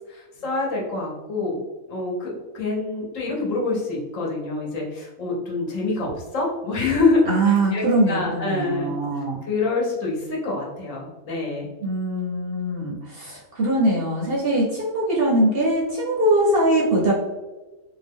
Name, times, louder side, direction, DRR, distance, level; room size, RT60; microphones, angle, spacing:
voice 1, 0.1-1.6 1.9-8.9 9.5-11.7, left 3 dB, 70° left, -3 dB, 1.2 m, -26 dB
voice 2, 7.3-9.4 11.8-17.1, right 1 dB, 55° right, -4 dB, 0.7 m, -22 dB
2.7 x 2.2 x 3.4 m, 1.2 s
omnidirectional pair, 1.4 m